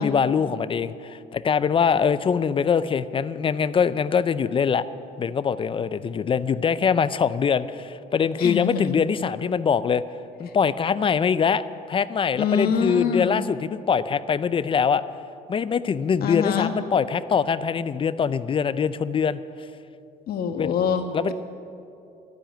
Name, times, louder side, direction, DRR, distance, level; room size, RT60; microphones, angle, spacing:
voice 1, 0.0-4.8 5.2-10.0 10.4-11.6 11.9-15.0 15.5-19.4 20.5-20.7 21.1-21.3, left 6 dB, 30° left, 15 dB, 0.5 m, -23 dB
voice 2, 8.4-9.0 12.4-13.4 16.2-16.7 20.3-21.3, left 7 dB, 65° left, 6 dB, 1.5 m, -25 dB
12.0 x 10.0 x 9.1 m, 2.7 s
cardioid pair, 110°, 17 cm